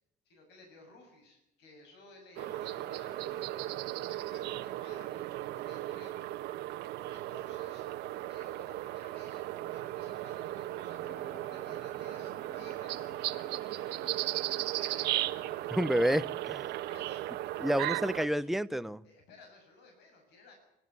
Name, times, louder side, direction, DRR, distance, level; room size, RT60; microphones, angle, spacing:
voice 1, 0.3-6.2 7.1-7.9 8.3-13.2 14.6-15.2 16.9-18.5 19.0-20.5, left 2 dB, 85° left, 7.2 m, -56 dB
sound 1, 2.4-18.3, right 15 dB, 90° right, 1.4 m, -36 dB
Bowed string instrument, 10.9-16.3, left 2 dB, 50° left, 4.5 m, -55 dB
voice 2, 15.7-16.7 17.6-19.0, right 1 dB, ahead, 0.8 m, -29 dB
27.0 x 13.5 x 9.6 m
cardioid pair, 110°, 17 cm